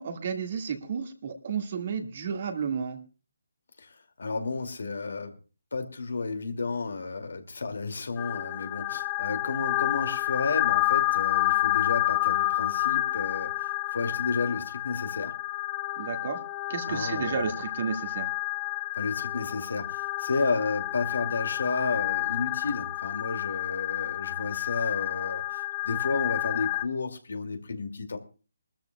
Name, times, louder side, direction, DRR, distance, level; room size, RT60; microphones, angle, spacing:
voice 1, 0.0-3.0 16.0-16.4 16.7-18.3, right 6 dB, 45° right, 6 dB, 1.8 m, -32 dB
voice 2, 4.2-5.3 5.7-15.3 16.9-17.5 18.9-28.2, left 4 dB, 75° left, 7 dB, 2.4 m, -32 dB
sound 1, 8.2-26.9, left 18 dB, 20° left, 0.7 m, -29 dB
23.0 x 13.0 x 2.3 m, 0.34 s
hypercardioid pair, 160°, 0 cm